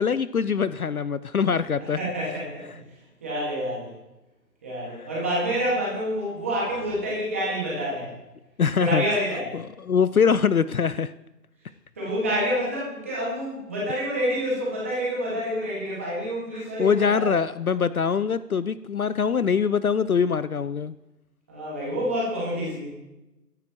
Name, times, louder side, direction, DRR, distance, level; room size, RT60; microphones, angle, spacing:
voice 1, 0.0-2.0 8.6-9.0 9.8-11.1 16.8-21.0, left 6 dB, 60° left, 16 dB, 0.5 m, -23 dB
voice 2, 1.8-2.7 3.2-3.9 4.6-8.1 8.8-9.6 12.0-17.4 21.5-22.9, equal, 10° right, -6 dB, 1.8 m, -28 dB
22.0 x 11.0 x 3.0 m, 0.95 s
figure-of-eight pair, 175°, 49 cm